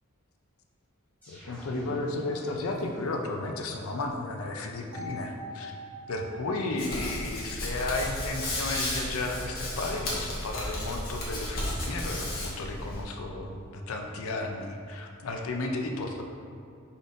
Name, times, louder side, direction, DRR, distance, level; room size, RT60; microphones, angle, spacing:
sound 1, 1.2-3.4, equal, 10° left, 1.2 m, -48 dB
voice 1, 1.3-5.7 6.1-16.2, left 2 dB, 75° left, 3 dB, 0.5 m, -33 dB
sound 2, 4.9-8.9, equal, 55° right, 0.8 m, -45 dB
Hands, 6.8-13.0, left 1 dB, 45° left, 1.0 m, -34 dB
5.1 x 4.1 x 2.5 m, 2.3 s
head